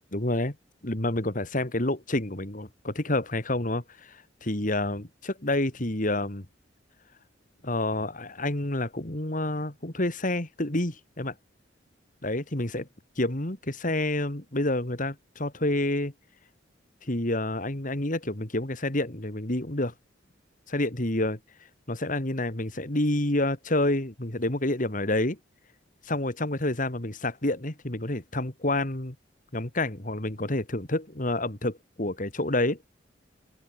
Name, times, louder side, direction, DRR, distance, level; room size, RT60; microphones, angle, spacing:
voice 1, 0.1-0.6 0.8-6.5 7.6-11.3 12.2-12.9 13.2-16.1 17.0-19.9 20.7-21.4 21.9-25.4 26.0-29.2 29.5-32.8, left 1 dB, 45° left, 2.7 m, -28 dB
head